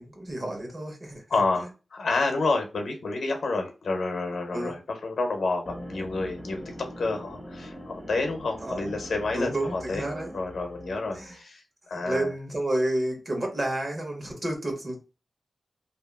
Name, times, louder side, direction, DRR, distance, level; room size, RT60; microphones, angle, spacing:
voice 1, 0.0-1.2 4.5-4.7 8.6-9.0 9.3-10.4 11.1-11.4 11.9-14.9, right 1 dB, 40° right, 1.1 m, -30 dB
voice 2, 1.3-10.0 10.3-12.3, left 3 dB, 85° left, 0.7 m, -29 dB
sound 1, 5.7-11.4, equal, 5° right, 0.7 m, -42 dB
2.8 x 2.5 x 2.4 m
wide cardioid pair, 110°, 0 cm